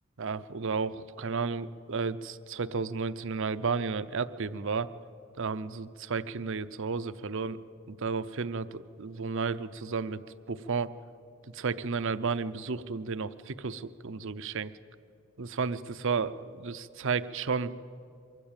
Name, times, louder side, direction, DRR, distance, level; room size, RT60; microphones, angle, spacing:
voice 1, 0.2-4.9 5.4-7.6 7.9-10.2 10.5-10.9 11.5-14.7 15.4-17.7, right 5 dB, 60° right, 14 dB, 0.7 m, -32 dB
24.0 x 13.5 x 9.0 m, 2.4 s
head